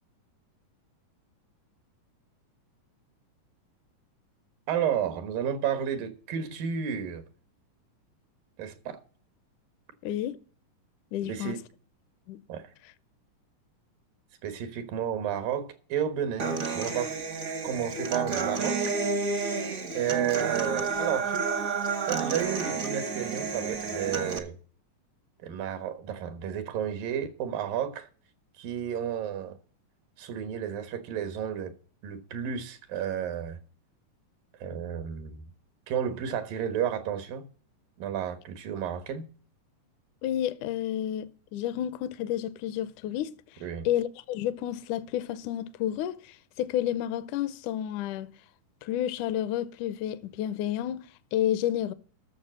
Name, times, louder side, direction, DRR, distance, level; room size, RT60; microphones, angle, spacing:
voice 1, 4.7-7.2 8.6-9.0 11.2-11.6 12.5-12.7 14.4-17.2 17.6-19.0 19.4-21.5 22.1-24.6 25.4-28.1 28.6-29.6 30.2-31.7 32.0-33.6 34.6-35.5 35.9-37.5 38.0-39.3 43.6-43.9, right 9 dB, 90° right, 3.1 m, -32 dB
voice 2, 10.0-10.4 11.1-11.6 12.3-12.4 40.2-43.3 43.9-48.3 48.8-51.9, left 11 dB, 75° left, 2.0 m, -30 dB
Human voice / Acoustic guitar, 16.4-24.4, right 4 dB, 70° right, 0.8 m, -30 dB
12.5 x 6.9 x 6.3 m
omnidirectional pair, 3.8 m